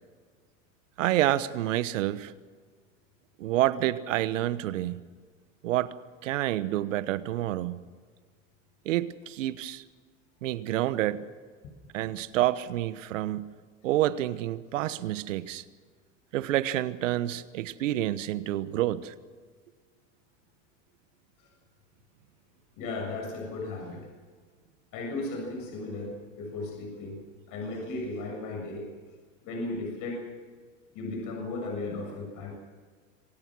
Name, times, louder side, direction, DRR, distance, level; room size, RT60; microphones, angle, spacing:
voice 1, 1.0-2.3 3.4-5.0 5.6-5.9 6.2-7.8 8.8-9.8 10.4-11.3 11.9-13.6 13.8-15.6 16.3-19.1, right 14 dB, 80° right, 15 dB, 1.2 m, -28 dB
voice 2, 22.8-24.1 24.9-27.2 27.5-28.9 29.4-30.2 30.9-32.5, left 2 dB, 55° left, 1 dB, 7.3 m, -35 dB
26.5 x 17.5 x 6.2 m, 1.5 s
hypercardioid pair, 95°, 38 cm